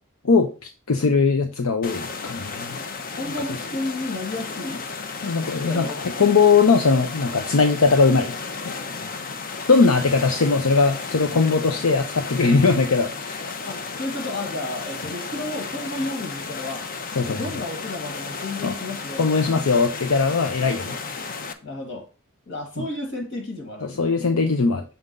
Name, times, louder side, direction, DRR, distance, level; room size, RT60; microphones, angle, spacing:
voice 1, 0.2-2.8 5.2-5.9 6.2-8.3 8.7-8.8 9.7-13.5 17.2-17.4 18.6-18.7 19.2-21.0 22.8-22.9 23.8-24.8, left 4 dB, 85° left, 0.7 m, -20 dB
sound 1, 1.8-21.5, left 4 dB, 45° left, 0.8 m, -33 dB
voice 2, 2.7-4.8 5.6-6.1 8.8-9.3 13.6-16.9 17.2-19.6 21.6-22.1 22.5-24.1, left 2 dB, 60° left, 2.0 m, -32 dB
7.1 x 3.8 x 5.2 m
head